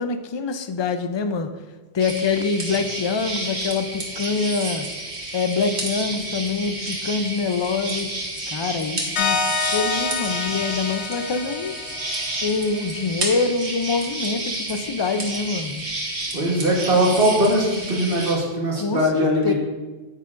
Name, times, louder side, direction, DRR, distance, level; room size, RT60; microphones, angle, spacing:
voice 1, 0.0-1.5 1.9-4.9 5.3-8.1 8.5-11.8 12.4-15.8 18.7-19.5, left 4 dB, 45° left, 8 dB, 0.3 m, -25 dB
sound 1, 2.0-18.4, right 2 dB, 75° right, 1.7 m, -31 dB
sound 2, 9.2-12.6, left 5 dB, 80° left, 1.1 m, -27 dB
voice 2, 16.3-19.5, equal, 55° right, -2 dB, 1.5 m, -20 dB
9.1 x 8.3 x 2.5 m, 1.2 s
omnidirectional pair, 1.1 m